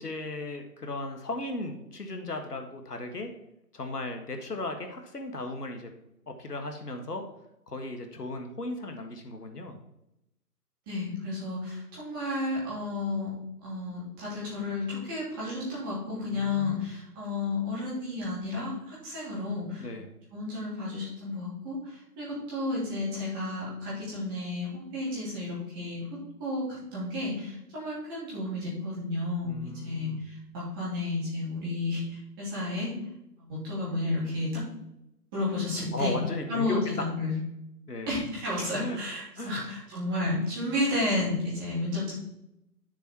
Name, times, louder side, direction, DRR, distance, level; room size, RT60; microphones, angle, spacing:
voice 1, 0.0-3.3 3.7-5.9 6.3-7.2 7.7-9.8 16.3-16.9 19.8-20.1 29.4-30.3 35.9-37.1 37.9-38.2 38.7-39.0 39.4-39.7, left 2 dB, 65° left, 5 dB, 1.6 m, -36 dB
voice 2, 10.9-13.3 13.6-19.9 20.3-26.1 26.4-32.9 33.4-34.6 35.3-36.1 36.5-37.3 38.1-42.1, left 2 dB, 15° right, -8 dB, 2.9 m, -32 dB
9.6 x 6.9 x 4.6 m, 0.85 s
figure-of-eight pair, 160°, 50 cm